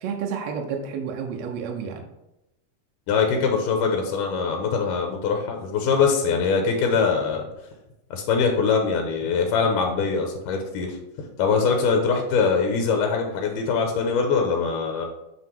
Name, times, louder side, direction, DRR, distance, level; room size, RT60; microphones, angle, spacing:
voice 1, 0.0-2.1, right 6 dB, 70° right, 3 dB, 1.9 m, -30 dB
voice 2, 3.1-7.5 8.1-15.1, left 5 dB, 85° left, 3 dB, 2.4 m, -23 dB
9.5 x 3.3 x 4.5 m, 0.92 s
omnidirectional pair, 3.8 m